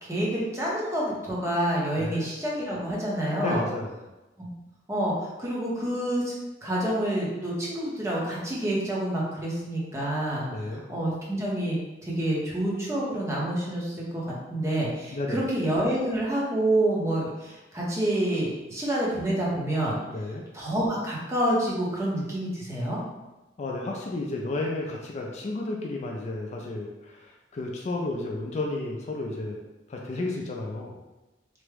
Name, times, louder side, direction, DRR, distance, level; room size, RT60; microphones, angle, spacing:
voice 1, 0.0-3.6 4.4-4.5 4.9-5.1 5.4-6.3 6.6-10.5 10.9-14.2 14.5-20.0 20.5-23.0, right 1 dB, 15° right, -6 dB, 0.7 m, -28 dB
voice 2, 1.9-2.2 3.4-3.9 10.5-10.8 15.1-15.5 20.1-20.4 23.6-29.6 29.9-31.0, left 2 dB, 40° left, -1 dB, 0.3 m, -32 dB
3.4 x 2.1 x 3.2 m, 1.1 s
head